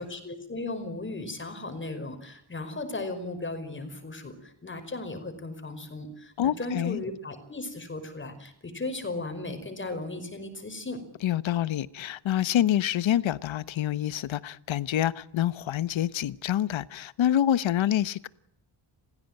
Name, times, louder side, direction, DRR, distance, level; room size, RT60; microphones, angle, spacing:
voice 1, 0.0-11.0, left 2 dB, 25° left, 5.3 m, -36 dB
voice 2, 6.4-7.0 11.2-18.3, left 11 dB, 65° left, 1.1 m, -27 dB
29.5 x 16.5 x 9.0 m
wide cardioid pair, 150°, 49 cm